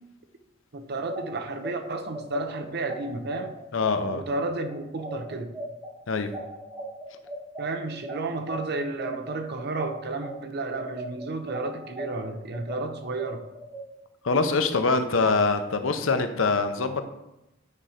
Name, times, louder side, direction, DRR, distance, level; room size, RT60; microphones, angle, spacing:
voice 1, 0.7-3.6 4.1-5.5 7.6-13.4, right 2 dB, 55° right, 7 dB, 0.8 m, -32 dB
sound 1, 1.1-10.3 10.7-13.8, right 1 dB, 20° right, 2.9 m, -38 dB
voice 2, 3.7-4.2 6.1-6.3 14.2-17.0, left 3 dB, 80° left, 8 dB, 0.8 m, -24 dB
8.6 x 4.3 x 5.1 m, 0.91 s
head